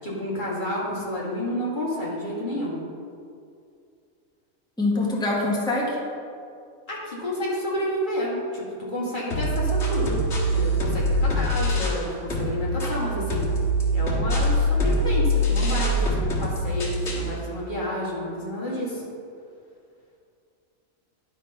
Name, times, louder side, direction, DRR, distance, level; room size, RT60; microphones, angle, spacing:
voice 1, 0.0-2.8 6.9-10.2 10.5-13.5 13.9-19.0, left 1 dB, 35° left, -7 dB, 2.3 m, -30 dB
voice 2, 4.8-6.0, left 2 dB, 5° left, -4 dB, 1.3 m, -24 dB
sound 1, 9.3-12.0 12.3-17.3, equal, 60° left, 1.8 m, -24 dB
11.0 x 4.0 x 5.5 m, 2.4 s
omnidirectional pair, 1.4 m